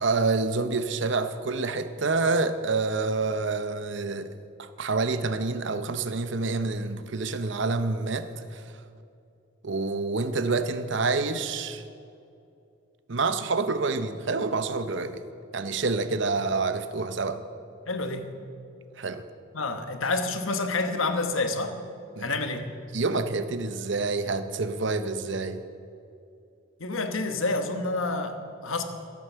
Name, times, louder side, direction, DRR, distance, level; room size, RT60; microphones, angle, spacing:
voice 1, 0.0-8.6 9.6-11.8 13.1-15.2 15.5-17.4 19.0-19.2 22.2-22.3 22.9-25.6, right 3 dB, 60° right, 11 dB, 0.7 m, -27 dB
voice 2, 17.9-18.3 19.5-21.7 22.2-22.7 26.8-28.8, left 3 dB, 75° left, 7 dB, 1.2 m, -28 dB
14.5 x 9.0 x 6.8 m, 2.5 s
head